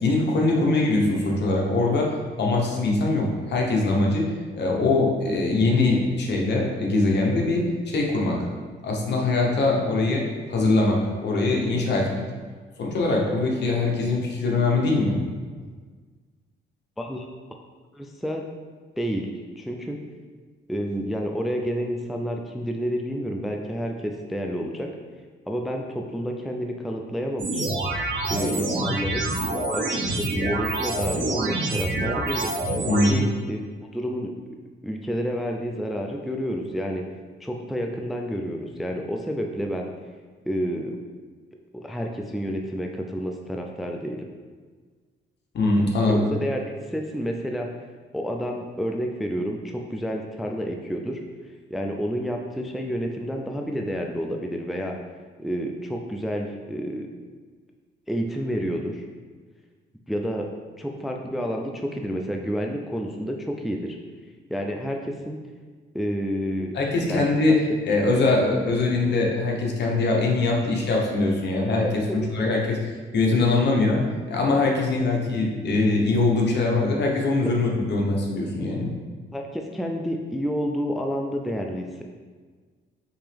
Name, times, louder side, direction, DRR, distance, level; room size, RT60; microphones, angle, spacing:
voice 1, 0.0-8.5 8.8-12.2 12.8-15.2 32.9-33.3 45.5-46.2 66.7-67.6 67.8-78.9, left 2 dB, 60° left, -1 dB, 1.0 m, -22 dB
voice 2, 17.9-18.5 19.0-19.3 19.6-20.0 20.7-24.9 25.5-27.7 28.3-29.3 29.7-32.5 33.0-33.6 33.9-34.6 34.8-37.0 37.4-39.9 40.5-41.0 41.7-44.3 46.1-47.7 48.1-51.2 51.7-54.9 55.4-57.1 58.1-59.0 60.1-60.5 60.8-64.0 64.5-65.4 65.9-66.7 67.1-67.5 71.8-71.9 77.4-77.5 79.3-82.0, equal, ahead, 2 dB, 0.3 m, -29 dB
sound 1, 27.4-33.1, right 2 dB, 65° right, 1.1 m, -26 dB
5.3 x 2.9 x 3.4 m, 1.5 s
cardioid pair, 90°, 20 cm